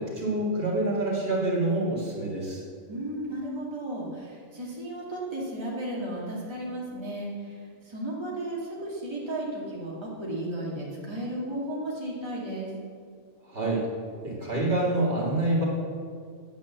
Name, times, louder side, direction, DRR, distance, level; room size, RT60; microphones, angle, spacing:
voice 1, 0.0-2.6 13.4-13.9 14.2-15.6, right 2 dB, 45° right, -4 dB, 2.6 m, -27 dB
voice 2, 2.9-12.7, right 1 dB, 20° right, -5 dB, 2.2 m, -34 dB
9.3 x 8.4 x 7.3 m, 2.1 s
omnidirectional pair, 1.3 m